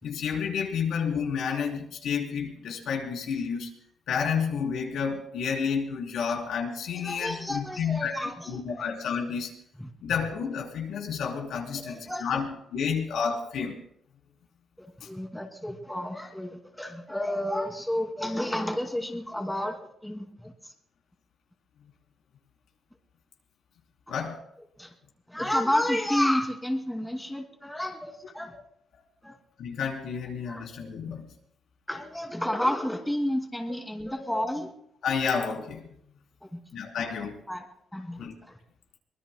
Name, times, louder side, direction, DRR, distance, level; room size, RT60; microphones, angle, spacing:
voice 1, 0.0-3.7 4.1-8.2 8.5-9.5 10.0-13.8 15.0-15.1 24.1-24.4 28.5-28.6 29.6-31.3 35.0-35.9 36.7-37.4 38.1-38.3, left 6 dB, 80° left, 1 dB, 3.4 m, -30 dB
voice 2, 6.9-8.9 9.8-9.9 11.8-12.3 14.8-20.7 24.8-24.9 25.3-28.5 29.2-29.3 30.5-30.6 31.9-34.7 36.4-36.6 37.5-37.6 37.9-38.5, left 1 dB, 5° left, 2 dB, 2.5 m, -31 dB
24.0 x 20.0 x 2.2 m, 0.67 s
cardioid pair, 105°, 0 cm